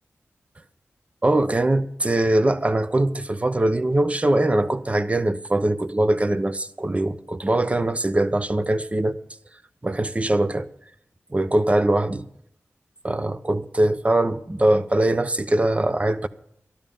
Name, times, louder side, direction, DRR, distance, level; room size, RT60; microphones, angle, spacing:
voice 1, 1.2-9.2 9.8-10.7 11.3-12.3 13.0-16.3, right 1 dB, 30° right, 0.9 m, -22 dB
13.0 x 12.5 x 5.4 m
wide cardioid pair, 65°, 5 cm